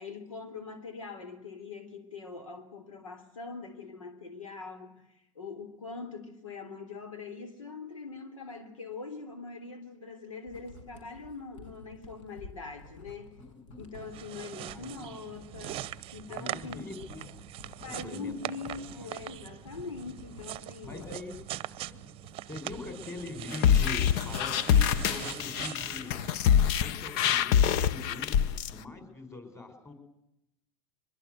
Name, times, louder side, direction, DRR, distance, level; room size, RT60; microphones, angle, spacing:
voice 1, 0.0-5.1 5.3-13.3 13.8-16.9 17.8-21.1, left 4 dB, 90° left, 3.4 m, -43 dB
Writing, 10.5-27.0 27.3-28.0, left 2 dB, 70° left, 7.4 m, -51 dB
voice 2, 13.4-13.9 14.7-15.1 16.3-17.4 17.9-18.3 18.8-19.1 20.8-21.3 22.5-26.2 26.8-29.9, left 3 dB, 15° left, 5.7 m, -43 dB
sound 1, 13.9-26.3, right 14 dB, 35° right, 0.8 m, -42 dB
sound 2, 23.5-28.7, left 8 dB, 50° left, 0.9 m, -25 dB
23.5 x 21.5 x 8.0 m
hypercardioid pair, 105°, 17 cm